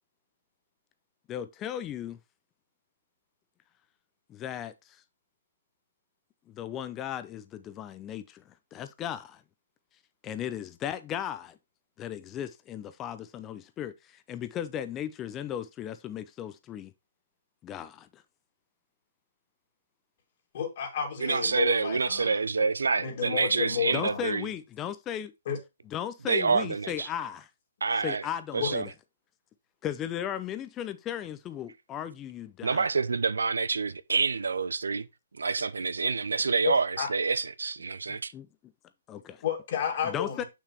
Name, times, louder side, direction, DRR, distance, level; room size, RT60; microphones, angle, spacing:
voice 1, 1.3-2.2 4.3-5.0 6.5-8.4 8.7-9.4 10.2-11.6 12.0-16.9 17.6-18.2 23.9-25.3 25.9-27.5 28.0-28.9 29.8-32.9 38.1-38.5 39.1-39.4 40.0-40.4, left 10 dB, 20° left, 0.6 m, -36 dB
voice 2, 20.5-22.7 23.0-24.3 25.5-25.6 26.5-26.7 28.6-28.7 36.6-37.1 39.4-40.4, left 8 dB, 50° left, 2.4 m, -32 dB
voice 3, 21.2-24.5 26.3-27.1 27.8-28.3 28.5-28.9 32.6-35.1 35.4-38.3, right 4 dB, 90° right, 0.5 m, -27 dB
6.6 x 6.1 x 3.1 m
hypercardioid pair, 145°, 0 cm